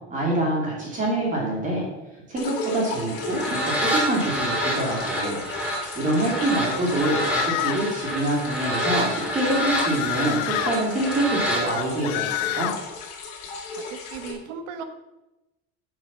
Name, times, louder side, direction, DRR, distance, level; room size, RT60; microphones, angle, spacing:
voice 1, 0.1-1.8 2.3-12.7, right 1 dB, 25° right, -3 dB, 2.6 m, -26 dB
sound 1, 2.4-14.3, left 3 dB, 50° left, 2.4 m, -36 dB
sound 2, 3.1-11.6, equal, 5° right, 2.5 m, -28 dB
sound 3, 6.6-7.9 9.1-10.7 11.7-12.8, left 17 dB, 75° left, 0.5 m, -29 dB
voice 2, 13.7-14.8, right 6 dB, 85° right, 9 dB, 1.3 m, -37 dB
8.6 x 7.1 x 6.0 m, 0.98 s
cardioid pair, 165°, 30 cm